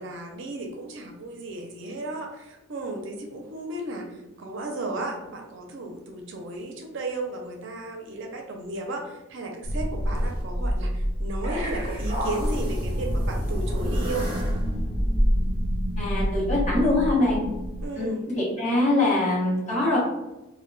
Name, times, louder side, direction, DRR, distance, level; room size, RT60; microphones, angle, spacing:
voice 1, 0.0-14.3 17.8-18.3, right 2 dB, 60° right, 2 dB, 0.5 m, -34 dB
sound 1, 9.6-17.9, equal, 25° right, 1.1 m, -27 dB
voice 2, 16.0-17.4 18.0-20.0, left 2 dB, 35° left, -6 dB, 1.1 m, -23 dB
2.2 x 2.1 x 3.8 m, 1.0 s
head